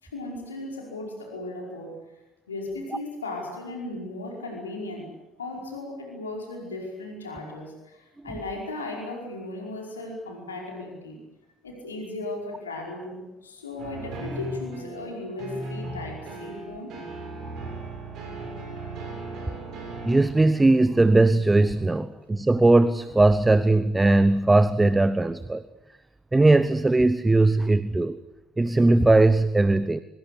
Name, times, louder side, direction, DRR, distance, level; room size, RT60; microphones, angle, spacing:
voice 1, 0.0-2.1 2.5-11.2 11.6-16.9, left 2 dB, 80° left, 1 dB, 5.1 m, -36 dB
sound 1, 13.8-20.2, right 2 dB, 50° right, 7.6 m, -37 dB
voice 2, 20.0-25.6 26.3-28.2 28.6-30.0, right 2 dB, 15° right, 16 dB, 1.0 m, -19 dB
24.5 x 24.5 x 8.2 m, 0.94 s
figure-of-eight pair, 55°, 0 cm